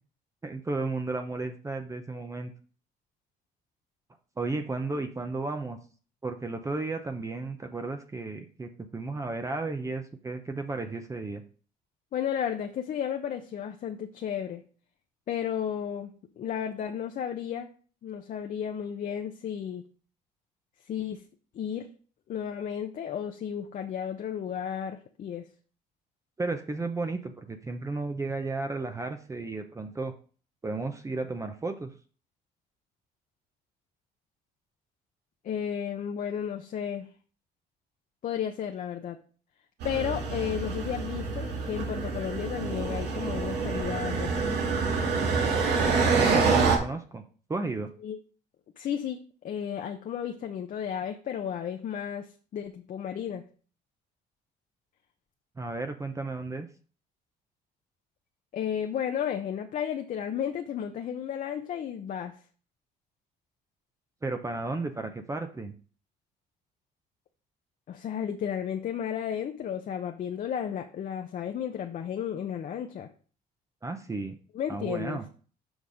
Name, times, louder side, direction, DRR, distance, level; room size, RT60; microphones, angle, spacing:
voice 1, 0.4-2.5 4.4-5.8 6.2-11.4 26.4-30.1 30.6-31.9 46.2-47.2 47.5-47.9 55.6-56.7 64.2-65.7 73.8-74.4 74.7-75.2, right 3 dB, 20° right, 6 dB, 0.8 m, -33 dB
voice 2, 12.1-14.6 15.3-17.7 18.0-19.8 20.9-21.2 21.5-21.9 22.3-25.4 35.4-37.1 38.2-39.2 39.8-44.7 48.0-48.2 48.8-49.2 49.4-53.4 58.5-62.3 67.9-73.1 74.5-75.3, left 8 dB, 50° left, 4 dB, 0.8 m, -33 dB
sound 1, 39.8-46.8, right 4 dB, 80° right, 2.2 m, -27 dB
6.4 x 5.4 x 5.0 m, 0.41 s
cardioid pair, 110°, 17 cm